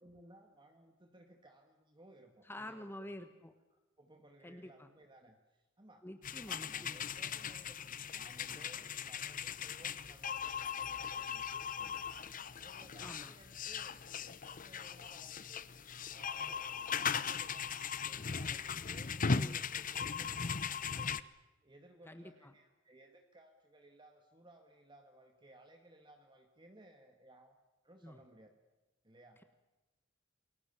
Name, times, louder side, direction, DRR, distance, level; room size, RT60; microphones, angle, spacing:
voice 1, 0.0-3.1 3.7-6.1 6.4-12.0 12.3-14.0 14.5-15.7 16.1-21.2 21.6-27.6 27.8-28.5 29.0-29.4, right 1 dB, 25° right, 4 dB, 2.1 m, -61 dB
voice 2, 2.4-3.5 4.4-4.9 6.0-7.0 13.0-13.3 19.2-19.6 22.0-22.5 28.0-28.2, left 1 dB, 10° left, 8 dB, 1.4 m, -48 dB
sound 1, 6.2-21.2, left 6 dB, 45° left, 0.9 m, -39 dB
29.0 x 22.0 x 7.1 m, 1.2 s
head